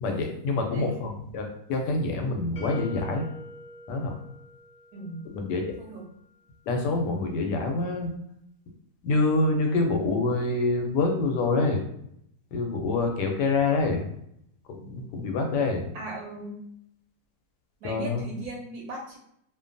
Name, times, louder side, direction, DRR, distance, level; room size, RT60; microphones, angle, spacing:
voice 1, 0.0-3.3 3.9-4.2 5.2-5.6 6.7-8.1 9.0-11.8 12.5-14.1 14.7-15.8 17.8-18.2, left 3 dB, 85° left, 3 dB, 1.2 m, -26 dB
voice 2, 0.7-1.1 4.9-5.3 5.8-6.1 15.9-16.6 17.8-19.2, right 2 dB, 70° right, -2 dB, 1.0 m, -38 dB
sound 1, 2.6-5.4, left 1 dB, 65° left, 1.0 m, -44 dB
2.8 x 2.2 x 2.5 m, 0.73 s
omnidirectional pair, 1.8 m